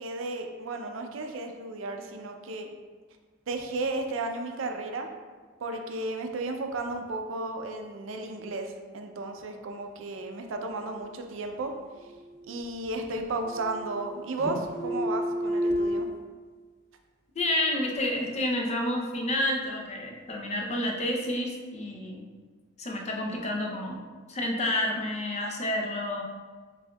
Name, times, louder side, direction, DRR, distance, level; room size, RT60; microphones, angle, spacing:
voice 1, 0.0-2.7 3.5-5.1 5.6-11.7 12.5-16.1, right 2 dB, 85° right, 5 dB, 0.5 m, -34 dB
sound 1, 11.9-12.9 13.2-14.1 14.4-16.0, equal, 20° right, 1.4 m, -31 dB
voice 2, 17.4-22.2 22.8-24.0 24.3-26.2, left 1 dB, 35° left, 0 dB, 0.6 m, -29 dB
7.4 x 2.7 x 2.2 m, 1.4 s
head